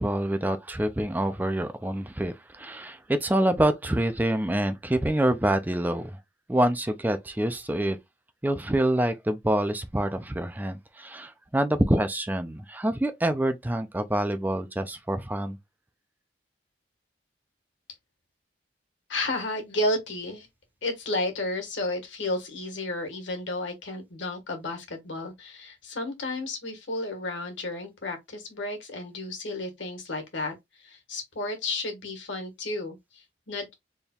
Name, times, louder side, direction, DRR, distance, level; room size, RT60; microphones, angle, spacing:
voice 1, 0.0-6.2 6.5-8.0 8.4-15.6, right 1 dB, 10° right, 0.4 m, -26 dB
voice 2, 19.1-20.5 20.8-33.7, left 2 dB, 90° left, 1.5 m, -32 dB
4.4 x 3.5 x 2.3 m
head